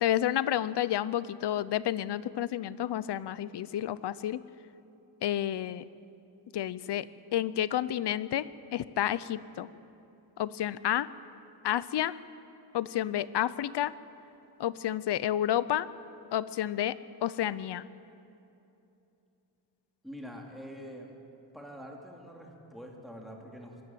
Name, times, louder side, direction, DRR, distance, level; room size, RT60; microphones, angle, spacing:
voice 1, 0.0-4.4 5.2-5.8 6.5-9.7 10.4-11.1 11.6-12.1 12.7-13.9 14.6-15.9 16.3-17.0 17.2-17.8, left 11 dB, 65° left, 17 dB, 0.7 m, -30 dB
voice 2, 20.0-21.1 21.5-23.9, equal, ahead, 0 dB, 2.7 m, -45 dB
23.0 x 13.0 x 9.1 m, 2.8 s
wide cardioid pair, 140°, 45 cm